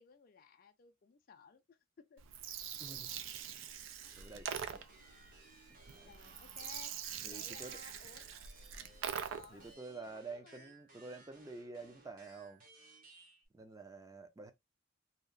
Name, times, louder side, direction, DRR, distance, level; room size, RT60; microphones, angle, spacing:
voice 1, 0.0-2.2 2.9-3.0 6.0-7.0 7.3-8.2 9.3-10.7, left 6 dB, 50° left, 0.4 m, -58 dB
Gurgling, 2.2-9.7, right 8 dB, 90° right, 0.4 m, -44 dB
voice 2, 2.8-3.7 4.1-4.9 5.8-6.1 7.2-7.8 9.5-12.6 13.5-14.5, right 3 dB, 20° right, 0.4 m, -49 dB
sound 1, 4.0-13.5, right 3 dB, 45° right, 0.9 m, -61 dB
2.8 x 2.0 x 2.4 m
head